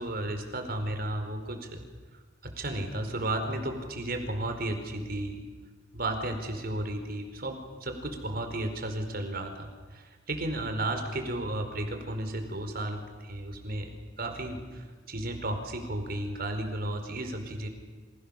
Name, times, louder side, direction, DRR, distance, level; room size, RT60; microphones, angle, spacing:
voice 1, 0.0-1.8 2.4-5.4 5.9-17.7, right 1 dB, 55° right, 6 dB, 4.7 m, -33 dB
29.5 x 27.0 x 7.2 m, 1.5 s
head